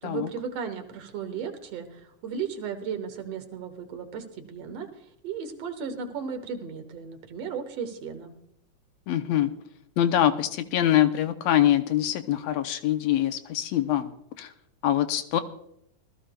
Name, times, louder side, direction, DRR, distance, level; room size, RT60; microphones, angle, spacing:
voice 1, 0.0-4.9 5.2-8.3, right 6 dB, 65° right, 7 dB, 2.1 m, -35 dB
voice 2, 9.1-9.5 10.0-14.1 14.4-14.5 14.8-15.4, left 11 dB, 75° left, 9 dB, 1.8 m, -24 dB
20.5 x 14.0 x 2.3 m, 0.75 s
omnidirectional pair, 3.4 m